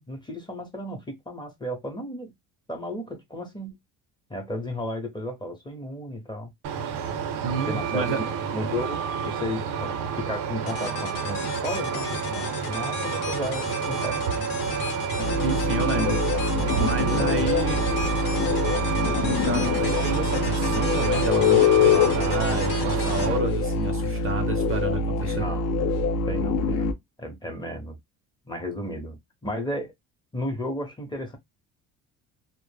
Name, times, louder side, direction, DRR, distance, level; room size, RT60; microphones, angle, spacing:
voice 1, 0.0-2.3 2.7-3.8 4.3-6.5 7.7-14.5 25.3-25.6 26.3-28.0 28.5-29.9 30.3-31.4, left 1 dB, 15° left, 0.7 m, -34 dB
Truck, 6.6-23.4, right 6 dB, 90° right, 0.6 m, -29 dB
voice 2, 7.4-8.2 15.4-16.2 16.7-17.8 19.2-25.5, right 4 dB, 40° right, 0.5 m, -30 dB
sound 1, 10.7-24.3, left 6 dB, 75° left, 0.8 m, -37 dB
sound 2, 15.2-26.9, left 4 dB, 50° left, 0.5 m, -24 dB
2.0 x 2.0 x 3.2 m
cardioid pair, 120°, 35 cm